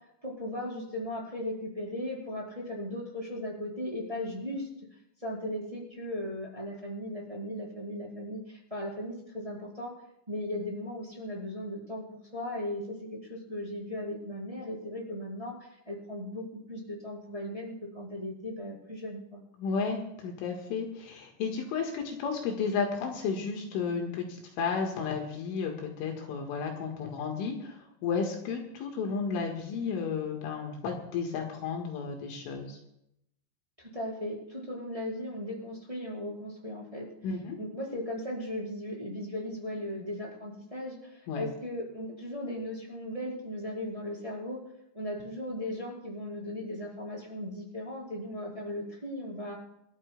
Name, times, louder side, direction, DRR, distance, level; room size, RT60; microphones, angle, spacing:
voice 1, 0.2-4.7 5.2-9.9 10.3-12.0 12.3-19.4 33.8-37.1 37.6-44.6 44.9-49.6, left 1 dB, 5° right, -4 dB, 3.9 m, -37 dB
voice 2, 19.6-32.8 37.2-37.6 41.3-41.4, left 5 dB, 75° left, 2 dB, 3.8 m, -33 dB
29.5 x 13.0 x 2.3 m, 0.81 s
omnidirectional pair, 6.0 m